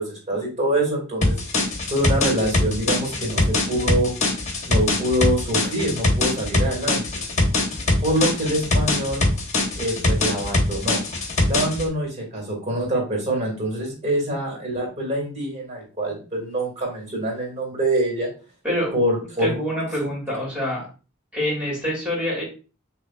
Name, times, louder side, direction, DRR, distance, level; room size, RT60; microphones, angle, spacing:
voice 1, 0.0-4.1 4.7-7.2 8.0-9.2 9.8-11.0 11.5-18.3 18.9-19.6 20.0-20.1, right 1 dB, 35° right, 0 dB, 2.2 m, -25 dB
sound 1, 1.2-11.9, left 2 dB, 35° left, 1.1 m, -22 dB
voice 2, 19.4-20.9 21.3-22.4, equal, 5° right, -4 dB, 2.5 m, -26 dB
6.4 x 2.9 x 2.3 m, 0.35 s
head